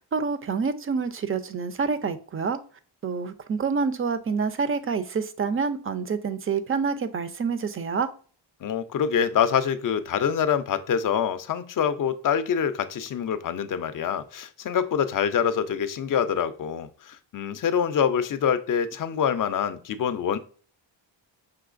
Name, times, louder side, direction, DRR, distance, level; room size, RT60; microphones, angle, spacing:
voice 1, 0.1-2.6 3.0-8.1, right 5 dB, 30° right, 0.4 m, -27 dB
voice 2, 8.6-20.4, left 8 dB, 45° left, 0.5 m, -25 dB
5.7 x 3.0 x 2.5 m
cardioid pair, 100°, 49 cm